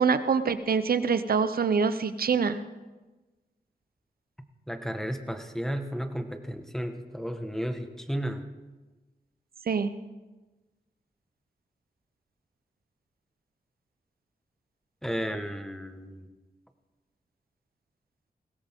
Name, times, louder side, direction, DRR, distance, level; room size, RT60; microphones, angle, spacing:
voice 1, 0.0-2.6 9.7-9.9, right 5 dB, 70° right, 12 dB, 0.9 m, -25 dB
voice 2, 4.7-8.4 15.0-16.3, equal, 5° left, 6 dB, 1.6 m, -33 dB
20.5 x 16.5 x 3.7 m, 1.2 s
cardioid pair, 55°, 16 cm